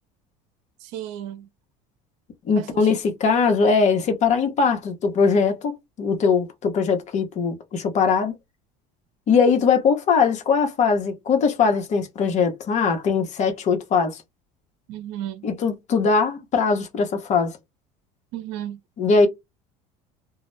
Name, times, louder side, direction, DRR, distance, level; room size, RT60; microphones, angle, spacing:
voice 1, 0.8-1.5 2.6-2.9 14.9-15.5 18.3-18.8, right 11 dB, 75° right, 0.6 m, -34 dB
voice 2, 2.4-8.3 9.3-14.2 15.4-17.6 19.0-19.3, left 5 dB, 45° left, 0.8 m, -21 dB
2.2 x 2.0 x 3.0 m
supercardioid pair, 105°, 17 cm